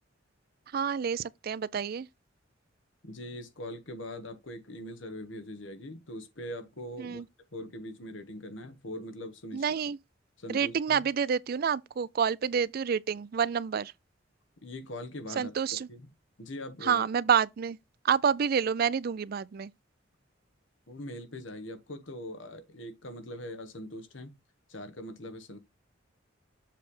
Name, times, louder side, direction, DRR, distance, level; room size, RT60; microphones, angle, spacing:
voice 1, 0.7-2.1 7.0-7.3 9.5-10.0 10.5-13.9 15.4-15.9 16.8-17.8 18.0-19.7, right 7 dB, 50° right, 0.4 m, -28 dB
voice 2, 3.0-7.2 7.5-9.7 10.4-11.1 14.6-15.5 15.9-16.1 16.4-17.1 20.9-24.4 24.7-25.6, left 1 dB, 70° left, 1.4 m, -41 dB
7.4 x 3.3 x 5.5 m
head